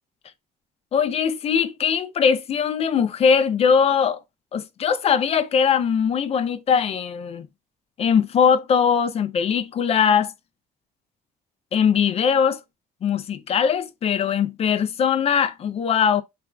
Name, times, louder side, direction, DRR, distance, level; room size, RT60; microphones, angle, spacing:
voice 1, 0.9-4.2 4.5-7.5 8.0-10.3 11.7-12.6 13.0-16.2, left 7 dB, 35° left, 0.4 m, -21 dB
3.3 x 2.3 x 2.3 m
cardioid pair, 110°, 17 cm